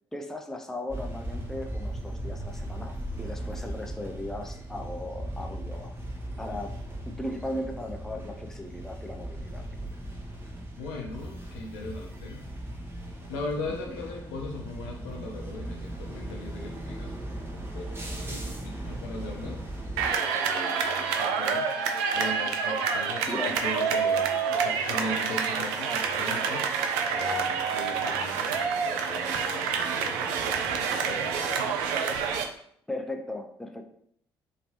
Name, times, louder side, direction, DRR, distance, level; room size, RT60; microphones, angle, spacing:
voice 1, 0.1-6.0 6.4-6.8 7.1-9.6 13.7-13.8 23.3-23.8 32.9-33.8, left 1 dB, 5° left, 4 dB, 0.4 m, -37 dB
sound 1, 0.9-20.1, right 1 dB, 20° right, 0.9 m, -38 dB
voice 2, 10.8-12.5 13.3-31.3, left 2 dB, 70° left, 1 dB, 0.6 m, -39 dB
sound 2, 20.0-32.5, right 6 dB, 70° right, 0.4 m, -28 dB
2.9 x 2.9 x 2.9 m, 0.67 s
figure-of-eight pair, 45°, 12 cm